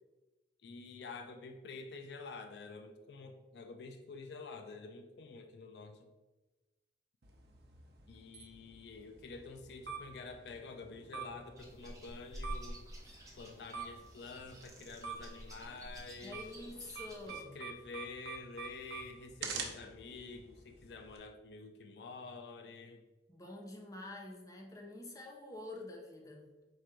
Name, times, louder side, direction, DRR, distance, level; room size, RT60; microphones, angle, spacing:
voice 1, 0.6-6.1 8.1-12.9 13.3-16.4 17.3-23.0, left 4 dB, 70° left, 5 dB, 0.4 m, -48 dB
sound 1, 7.2-21.2, right 5 dB, 60° right, 0.7 m, -48 dB
sound 2, 11.6-17.3, equal, 20° right, 0.8 m, -49 dB
voice 2, 16.2-17.6 23.3-26.5, left 2 dB, 20° left, 1 dB, 0.6 m, -47 dB
4.6 x 2.5 x 4.4 m, 1.2 s
head